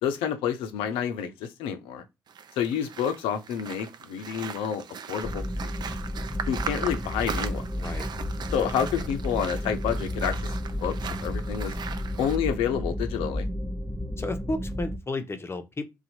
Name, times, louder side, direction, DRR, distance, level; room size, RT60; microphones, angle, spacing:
voice 1, 0.0-2.0 2.6-5.7 6.5-7.6 8.5-10.9 11.2-11.7 12.2-13.5, left 8 dB, 75° left, 0.6 m, -29 dB
sound 1, 2.3-12.4, right 6 dB, 50° right, 0.5 m, -39 dB
sound 2, 5.2-15.0, left 1 dB, 5° left, 0.8 m, -32 dB
voice 2, 7.8-8.1 14.2-15.9, left 2 dB, 30° left, 0.9 m, -33 dB
2.7 x 2.4 x 4.2 m
hypercardioid pair, 45°, 9 cm